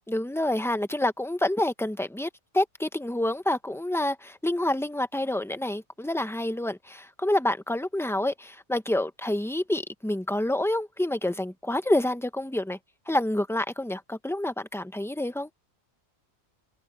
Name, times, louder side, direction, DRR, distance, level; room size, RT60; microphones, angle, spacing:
voice 1, 0.1-12.8 13.1-15.5, left 1 dB, 5° left, 0.7 m, -28 dB
omnidirectional pair, 1.2 m